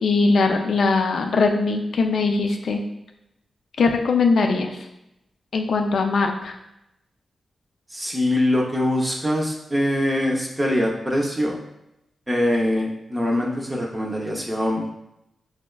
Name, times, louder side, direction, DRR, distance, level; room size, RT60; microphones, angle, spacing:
voice 1, 0.0-2.8 3.8-4.8 5.5-6.5, left 4 dB, 75° left, 4 dB, 0.4 m, -20 dB
voice 2, 7.9-11.6 12.3-14.9, left 1 dB, 20° right, -1 dB, 0.5 m, -23 dB
4.6 x 2.1 x 2.3 m, 0.87 s
cardioid pair, 60°, 0 cm